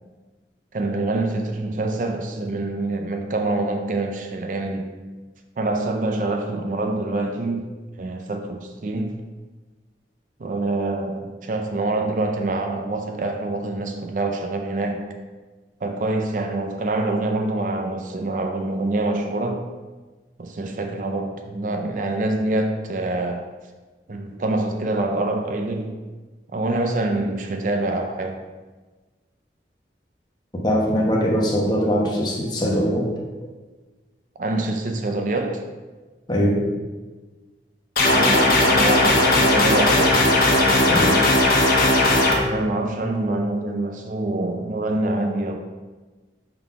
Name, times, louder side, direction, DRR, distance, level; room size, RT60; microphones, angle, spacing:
voice 1, 0.7-4.9 5.6-7.7 8.0-9.2 10.4-15.1 15.8-19.6 20.4-23.5 24.1-26.0 26.5-28.4 34.4-35.6 38.0-41.1 42.4-45.6, right 2 dB, 45° right, 4 dB, 0.4 m, -26 dB
voice 2, 30.5-33.0 36.3-36.7 40.9-41.2, equal, 25° left, -2 dB, 1.0 m, -21 dB
sound 1, 38.0-42.3, left 1 dB, 55° left, 1.0 m, -17 dB
5.6 x 3.9 x 4.6 m, 1.3 s
head